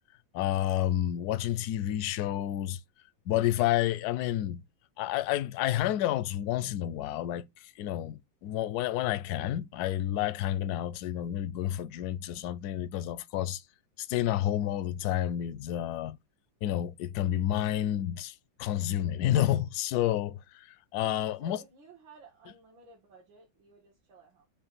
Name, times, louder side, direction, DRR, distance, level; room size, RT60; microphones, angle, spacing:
voice 1, 0.3-2.8 3.3-4.6 5.0-13.6 14.0-16.2 16.6-21.6, left 12 dB, 75° left, 0.9 m, -30 dB
voice 2, 21.4-24.5, right 4 dB, 75° right, 2.5 m, -54 dB
6.8 x 2.5 x 5.6 m
omnidirectional pair, 2.1 m